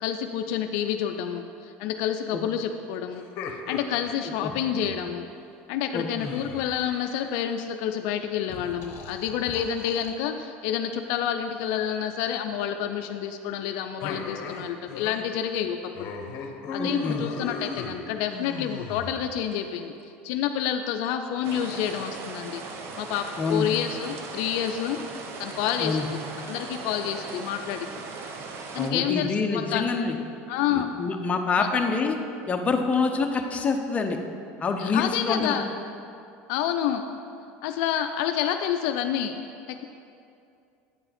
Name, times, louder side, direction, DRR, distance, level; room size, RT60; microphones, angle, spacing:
voice 1, 0.0-3.2 3.7-5.3 5.7-15.8 16.7-22.6 23.0-25.0 25.4-26.2 26.5-27.9 28.7-29.8 30.5-30.9 31.6-31.7 34.8-35.6 36.5-37.0 37.6-39.4 39.7-39.8, left 9 dB, 70° left, 6 dB, 0.4 m, -28 dB
sound 1, 3.1-5.1 6.2-7.6 8.5-10.1 11.8-12.2 14.0-15.3 15.5-15.7 15.9-19.5, left 4 dB, 50° left, 0.9 m, -37 dB
voice 2, 5.9-6.3 16.8-17.2 23.4-23.7 25.8-26.1 28.8-30.2 30.7-32.2 32.5-34.2 34.6-35.6, left 4 dB, 25° left, 4 dB, 0.7 m, -26 dB
sound 2, 21.4-28.9, right 4 dB, 45° right, 0.8 m, -38 dB
8.6 x 5.5 x 4.2 m, 2.5 s
supercardioid pair, 110°, 6 cm